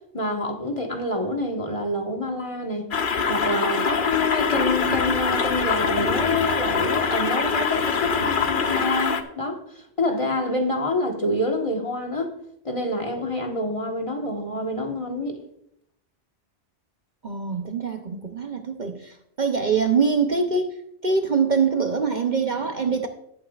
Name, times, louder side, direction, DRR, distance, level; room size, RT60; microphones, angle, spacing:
voice 1, 0.1-2.9 3.3-12.3 12.6-15.4, left 1 dB, 30° left, 1.4 m, -27 dB
sound 1, 2.9-9.2, left 5 dB, 50° left, 0.9 m, -24 dB
voice 2, 17.2-19.1 19.4-20.7 21.0-23.1, right 5 dB, 45° right, 0.8 m, -23 dB
18.0 x 8.9 x 2.4 m
omnidirectional pair, 1.2 m